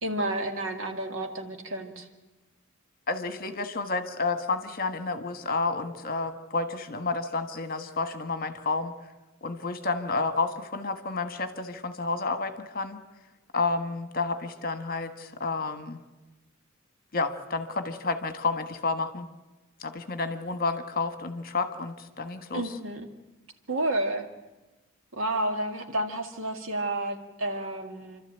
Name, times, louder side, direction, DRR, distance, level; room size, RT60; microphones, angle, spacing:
voice 1, 0.0-2.1 22.5-23.1 23.7-24.3 25.1-28.2, right 1 dB, 75° right, 5 dB, 2.1 m, -30 dB
voice 2, 3.1-8.9 9.4-13.0 13.5-16.0 17.1-19.3 19.8-22.6, left 3 dB, 45° left, 9 dB, 1.4 m, -30 dB
27.5 x 13.0 x 9.0 m, 1.1 s
head